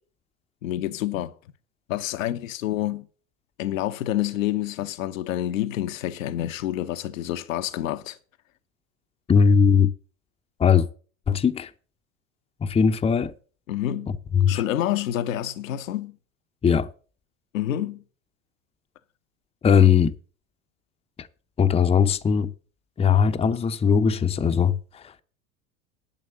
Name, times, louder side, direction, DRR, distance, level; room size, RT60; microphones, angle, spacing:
voice 1, 0.6-1.3 1.9-3.1 3.6-8.2 13.7-14.2 14.5-16.2 17.5-18.0, left 12 dB, 75° left, 0.9 m, -28 dB
voice 2, 9.3-9.9 10.6-10.9 11.3-11.7 12.6-13.3 14.3-14.6 16.6-16.9 19.6-20.1 21.2-21.3 21.6-22.5 23.0-25.0, left 6 dB, 15° left, 0.7 m, -19 dB
11.0 x 5.9 x 7.9 m
hypercardioid pair, 85°, 40 cm